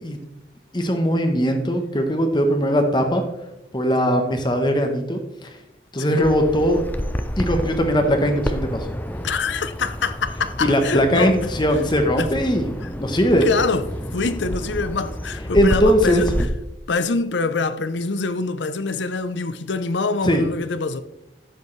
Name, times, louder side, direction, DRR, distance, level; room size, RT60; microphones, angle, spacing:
voice 1, 0.7-3.2 3.7-5.5 5.9-6.8 7.4-8.9 10.6-12.7 13.0-13.5 15.5-16.2 20.2-20.4, equal, 25° left, 1.0 m, -20 dB
Bird vocalization bird call bird song, 6.2-16.5, equal, 10° left, 0.6 m, -29 dB
voice 2, 9.2-11.4 12.2-12.3 13.4-13.9 14.1-16.4 16.9-21.0, left 4 dB, 85° left, 0.7 m, -25 dB
12.0 x 8.2 x 3.2 m
head